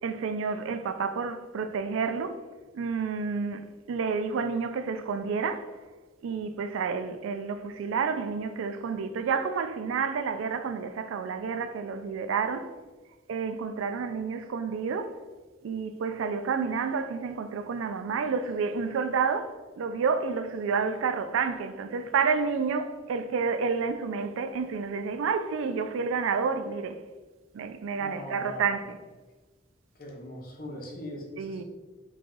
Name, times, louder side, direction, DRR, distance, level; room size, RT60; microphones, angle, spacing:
voice 1, 0.0-2.4 2.7-5.7 6.2-12.7 13.3-15.1 15.6-27.0 27.5-29.0 31.4-31.6, right 5 dB, 85° right, 0.3 m, -30 dB
voice 2, 28.0-28.8 29.9-31.6, left 1 dB, 50° left, 0.9 m, -40 dB
3.5 x 3.2 x 3.8 m
head